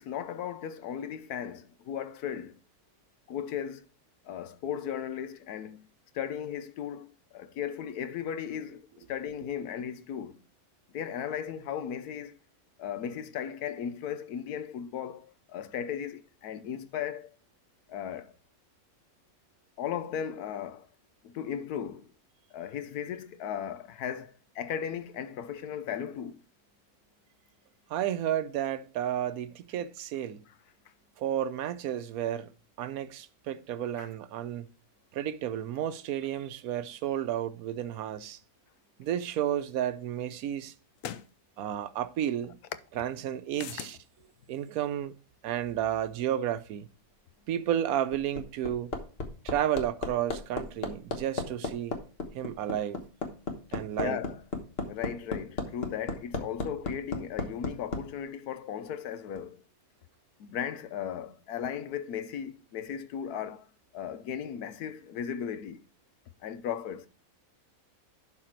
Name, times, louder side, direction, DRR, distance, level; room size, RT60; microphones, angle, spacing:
voice 1, 0.0-2.6 3.3-3.9 4.2-5.9 6.1-10.4 10.9-12.4 12.8-17.3 17.9-18.3 19.8-20.9 21.2-22.1 22.5-26.4 34.0-34.1 53.7-54.4 54.9-59.6 60.4-63.7 63.9-65.8 66.4-67.1, left 8 dB, 85° left, 1.3 m, -36 dB
voice 2, 27.9-30.5 31.2-32.5 32.8-34.7 35.1-38.4 39.0-40.7 41.6-42.6 43.0-44.0 44.5-45.1 45.4-46.9 47.5-48.9 49.4-51.9 52.3-53.0 53.7-54.2, right 11 dB, 75° right, 1.1 m, -32 dB
sound 1, 39.6-39.7 41.0-41.3 43.5-44.0, left 10 dB, 70° left, 1.0 m, -39 dB
Hammer, 47.9-58.0 59.4-59.5, left 3 dB, 45° left, 1.4 m, -34 dB
11.5 x 4.2 x 4.4 m
omnidirectional pair, 1.6 m